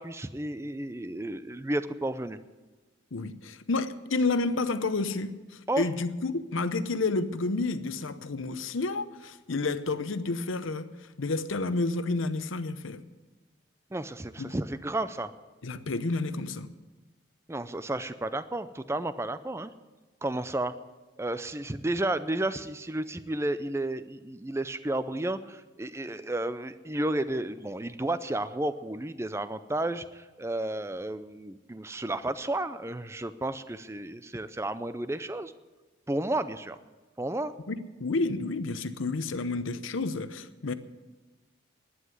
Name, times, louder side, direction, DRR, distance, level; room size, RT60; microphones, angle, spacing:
voice 1, 0.0-2.4 5.7-5.8 13.9-15.3 17.5-19.7 20.2-20.7 21.2-35.5 36.1-36.8 37.2-37.5, right 1 dB, 15° right, 0.4 m, -32 dB
voice 2, 3.1-13.0 14.4-14.5 15.6-16.7 37.7-40.7, left 3 dB, 80° left, 0.8 m, -30 dB
11.5 x 9.6 x 9.3 m
head